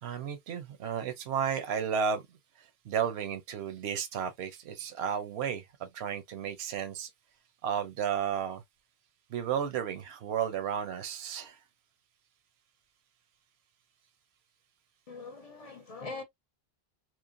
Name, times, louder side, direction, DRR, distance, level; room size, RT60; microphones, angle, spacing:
voice 1, 0.0-2.2 2.6-7.1 7.6-8.6 9.3-11.6, right 8 dB, 80° right, 0.9 m, -33 dB
voice 2, 15.1-16.2, left 3 dB, 45° left, 0.6 m, -42 dB
3.1 x 2.1 x 2.4 m
omnidirectional pair, 1.1 m